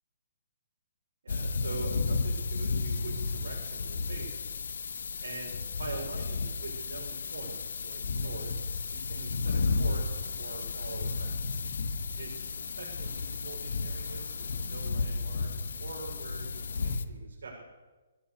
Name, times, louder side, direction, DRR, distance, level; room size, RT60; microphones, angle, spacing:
voice 1, 1.2-4.5 5.2-8.5 8.9-11.4 12.1-17.6, right 3 dB, 90° right, -2 dB, 7.0 m, -43 dB
sound 1, 1.3-17.0, left 3 dB, 85° left, 3.1 m, -34 dB
sound 2, 1.3-17.0, left 6 dB, 70° left, 1.2 m, -39 dB
25.0 x 17.0 x 6.8 m, 1.2 s
hypercardioid pair, 170°, 0 cm